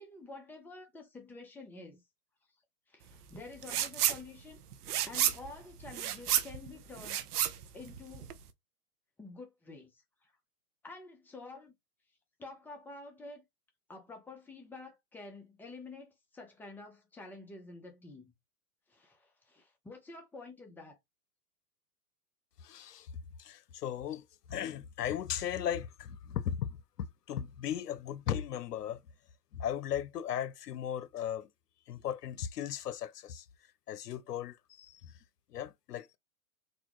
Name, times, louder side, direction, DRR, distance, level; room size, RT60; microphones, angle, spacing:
voice 1, 0.0-2.0 2.9-4.6 5.1-7.2 7.7-8.3 9.2-10.0 10.8-11.8 12.4-13.4 13.9-18.3 18.9-21.0, left 3 dB, 5° left, 0.7 m, -49 dB
sound 1, 3.6-4.2 4.5-8.5, right 10 dB, 75° right, 0.8 m, -31 dB
voice 2, 22.6-23.1 23.4-29.0 29.5-31.5 31.9-33.5 33.9-35.2 35.5-36.2, left 9 dB, 90° left, 0.7 m, -37 dB
4.0 x 2.2 x 3.0 m
hypercardioid pair, 125°, 46 cm